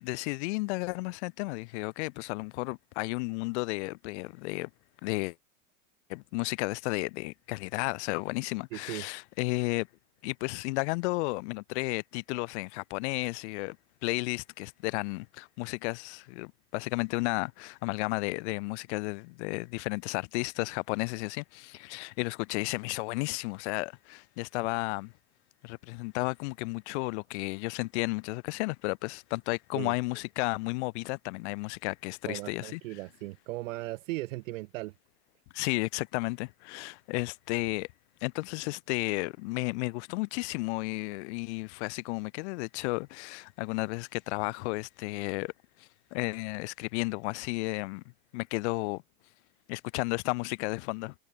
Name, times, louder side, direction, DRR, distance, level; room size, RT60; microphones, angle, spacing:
voice 1, 0.0-4.7 5.0-5.3 6.1-9.9 10.2-13.8 14.0-25.1 25.6-32.8 35.5-37.9 38.2-45.5 45.8-48.0 48.3-49.0 49.7-51.1, left 26 dB, 60° left, 1.1 m, -33 dB
voice 2, 8.7-9.1 29.7-29.9 32.3-34.9, right 19 dB, 80° right, 0.6 m, -37 dB
supercardioid pair, 135°, 39 cm